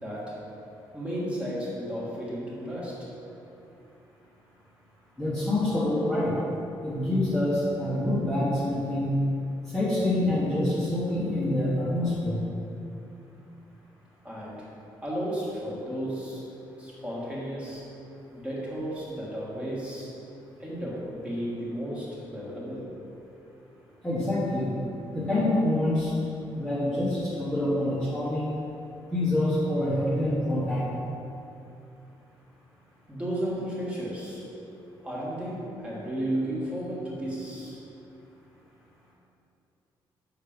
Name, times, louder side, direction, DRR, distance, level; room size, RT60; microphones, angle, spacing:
voice 1, 0.0-0.4 0.9-3.1 14.2-14.7 15.0-16.4 16.8-17.9 18.3-20.1 20.6-22.9 33.1-34.5 35.0-37.8, equal, 10° right, -6 dB, 1.6 m, -33 dB
voice 2, 5.2-6.4 6.8-9.2 9.7-12.4 24.0-24.7 25.1-26.1 26.5-28.5 29.1-30.9, left 1 dB, 5° left, -10 dB, 1.1 m, -26 dB
6.5 x 5.8 x 5.1 m, 2.7 s
cardioid pair, 165°, 9 cm